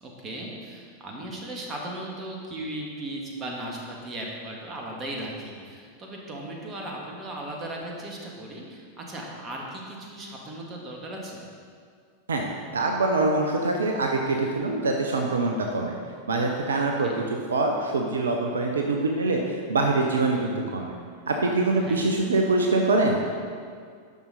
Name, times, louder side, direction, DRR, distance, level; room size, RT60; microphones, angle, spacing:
voice 1, 0.0-11.5 17.0-17.2 21.8-22.0, right 1 dB, 25° right, -1 dB, 1.7 m, -37 dB
voice 2, 12.7-15.9 16.3-17.1 17.5-20.9 21.3-23.2, right 2 dB, 70° right, 1 dB, 0.7 m, -24 dB
10.5 x 6.1 x 4.0 m, 2.1 s
figure-of-eight pair, 90°, 0 cm